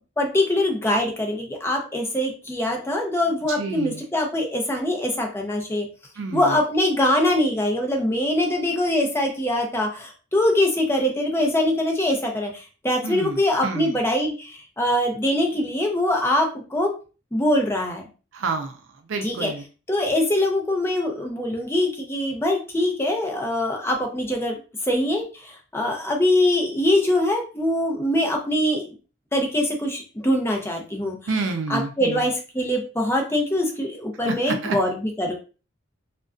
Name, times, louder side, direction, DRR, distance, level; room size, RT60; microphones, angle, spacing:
voice 1, 0.2-5.9 6.3-16.9 17.3-18.0 19.2-19.5 19.9-24.5 24.9-28.9 29.3-31.2 31.7-35.3, left 1 dB, 15° left, 1 dB, 0.5 m, -23 dB
voice 2, 3.6-4.0 6.2-6.6 13.0-13.9 18.3-18.8 19.1-19.6 31.3-32.3 34.2-34.8, right 4 dB, 85° right, 6 dB, 0.4 m, -29 dB
2.4 x 2.1 x 2.4 m, 0.34 s
head